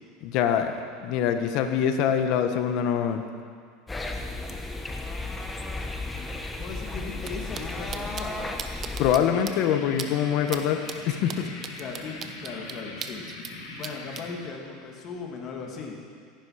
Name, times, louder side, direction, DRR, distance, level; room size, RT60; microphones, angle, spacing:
voice 1, 0.2-3.2 9.0-11.5, left 8 dB, 60° left, 7 dB, 1.2 m, -24 dB
sound 1, 3.9-9.2, left 2 dB, 15° left, 1.1 m, -34 dB
voice 2, 6.3-8.4 11.8-13.2 13.7-16.0, left 5 dB, 45° left, 0 dB, 2.5 m, -38 dB
sound 2, 7.2-7.3 7.5-7.6 7.9-8.2 8.6-9.2 9.5-9.6 10.0-10.1 10.5-10.6 10.9-13.5 13.8-14.2, right 8 dB, 35° right, 0.9 m, -36 dB
sound 3, 9.3-14.3, left 2 dB, 80° left, 2.6 m, -41 dB
16.0 x 10.5 x 5.0 m, 2.1 s
supercardioid pair, 115°, 0 cm